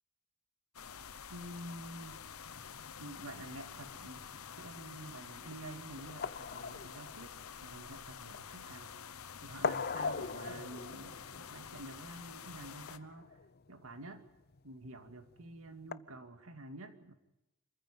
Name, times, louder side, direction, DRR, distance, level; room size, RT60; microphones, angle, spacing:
sound 1, 0.7-13.0, left 7 dB, 85° left, 1.0 m, -49 dB
voice 1, 1.3-2.2 2.9-9.0 9.4-13.4 13.7-14.2 14.6-17.1, right 1 dB, 70° right, 7 dB, 2.5 m, -49 dB
sound 2, 2.5-15.9, left 5 dB, 45° left, 0.7 m, -43 dB
26.5 x 15.0 x 9.2 m, 0.94 s
head